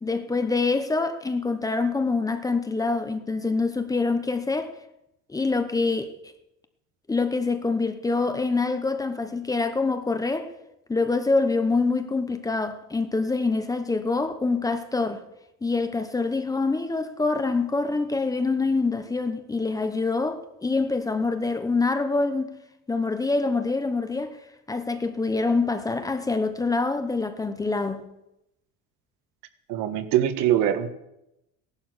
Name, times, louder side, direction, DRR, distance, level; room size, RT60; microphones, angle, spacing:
voice 1, 0.0-4.7 5.3-6.1 7.1-10.5 10.9-15.2 15.6-22.5 22.9-24.4 24.7-28.1, left 3 dB, 10° left, 0.9 m, -25 dB
voice 2, 29.7-30.9, right 11 dB, 75° right, 1.6 m, -23 dB
17.0 x 11.5 x 6.4 m
cardioid pair, 160°, 33 cm